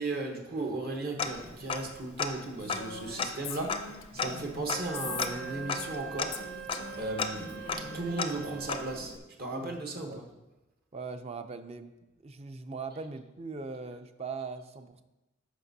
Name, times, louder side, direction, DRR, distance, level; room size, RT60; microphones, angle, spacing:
voice 1, 0.0-6.4 7.0-9.1 9.4-10.2, right 2 dB, 50° right, 2 dB, 1.0 m, -36 dB
Tick-tock, 1.2-2.3 2.7-9.2, left 5 dB, 25° left, 0.4 m, -36 dB
Female speech woman speaking, 2.6-6.0 6.3-8.1, left 7 dB, 80° left, 0.5 m, -43 dB
Wind instrument woodwind instrument, 4.6-9.1, right 8 dB, 80° right, 0.6 m, -43 dB
voice 2, 9.5-10.2 10.9-11.9 12.2-15.0, right 4 dB, 30° right, 9 dB, 0.4 m, -40 dB
12.5 x 5.2 x 2.7 m, 1.0 s
head